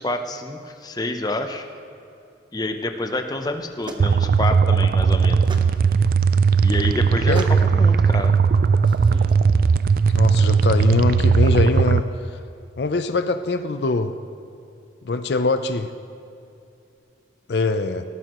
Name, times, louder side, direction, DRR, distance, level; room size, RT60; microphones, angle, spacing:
voice 1, 0.0-1.7 2.5-5.4 6.6-8.4, left 2 dB, 20° left, 6 dB, 0.7 m, -28 dB
sound 1, 3.3-9.3, right 2 dB, 25° right, 0.8 m, -40 dB
sound 2, 4.0-12.0, right 5 dB, 50° right, 0.3 m, -18 dB
voice 2, 10.1-12.1 12.8-14.1 15.1-15.9 17.5-18.0, left 3 dB, 65° left, 9 dB, 0.5 m, -22 dB
18.5 x 13.5 x 3.0 m, 2.6 s
head